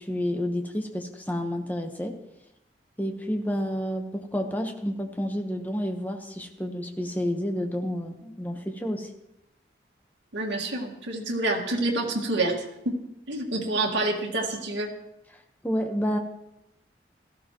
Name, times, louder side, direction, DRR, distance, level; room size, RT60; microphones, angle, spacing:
voice 1, 0.0-2.1 3.0-9.1 15.6-16.2, equal, 10° left, 4 dB, 1.0 m, -30 dB
voice 2, 10.3-12.6 12.9-13.0 13.3-14.9, right 2 dB, 90° right, -2 dB, 1.8 m, -27 dB
16.5 x 14.0 x 3.0 m, 0.86 s
head